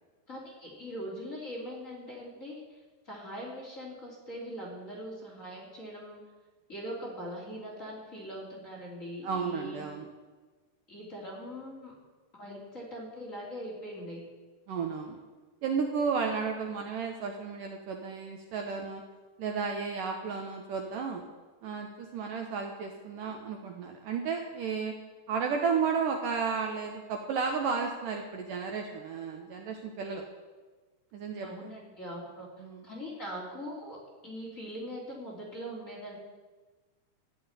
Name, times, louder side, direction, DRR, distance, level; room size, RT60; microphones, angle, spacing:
voice 1, 0.3-2.8 3.0-6.2 6.7-9.8 10.9-11.9 12.3-14.2 31.4-32.5 32.8-34.0 34.2-36.2, equal, 20° left, -4 dB, 3.1 m, -41 dB
voice 2, 9.2-10.1 14.7-15.2 15.6-19.0 19.4-21.2 21.6-24.9 25.3-30.2 31.1-31.5 32.6-32.8, right 5 dB, 70° right, 3 dB, 2.3 m, -33 dB
13.0 x 9.3 x 9.6 m, 1.3 s
omnidirectional pair, 4.7 m